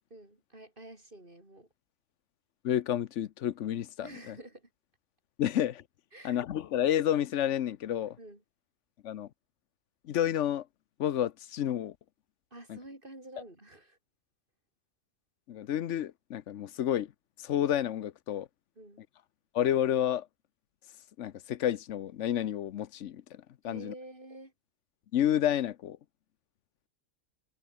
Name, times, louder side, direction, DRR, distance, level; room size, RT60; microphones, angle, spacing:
voice 1, 0.1-1.7 4.0-4.7 6.1-6.4 8.2-8.4 12.5-14.0 18.8-19.0 23.6-24.5, right 1 dB, 45° right, 6.2 m, -49 dB
voice 2, 2.6-4.4 5.4-5.8 6.2-8.2 9.0-9.3 10.0-10.6 11.0-11.9 12.7-12.8 15.5-17.1 17.4-18.5 19.5-20.3 21.2-23.9 25.1-26.0, left 11 dB, 80° left, 1.1 m, -30 dB
omnidirectional pair, 1.2 m